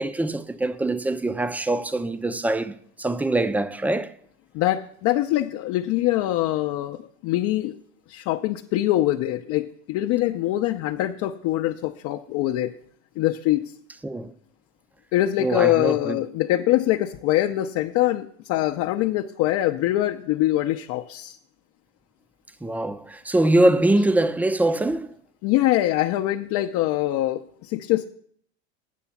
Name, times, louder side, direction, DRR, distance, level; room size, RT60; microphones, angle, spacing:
voice 1, 0.0-4.1 14.0-14.3 15.4-16.2 22.6-25.2, right 1 dB, 5° right, 0.5 m, -23 dB
voice 2, 4.5-7.7 8.1-12.7 13.2-13.7 15.1-21.4 25.4-28.1, left 14 dB, 55° left, 0.6 m, -23 dB
8.4 x 6.7 x 7.1 m
supercardioid pair, 110°, 35 cm